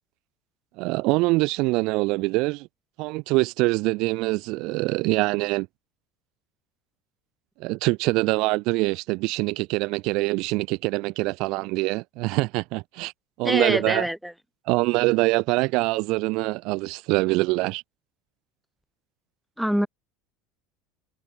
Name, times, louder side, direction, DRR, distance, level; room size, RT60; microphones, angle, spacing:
voice 1, 0.8-2.7 3.0-5.7 7.6-13.1 13.4-14.1 14.7-17.8, right 24 dB, 50° right, 4.2 m, -24 dB
voice 2, 13.4-14.3 19.6-19.9, equal, ahead, 6.3 m, -24 dB
cardioid pair, 170°, 0 cm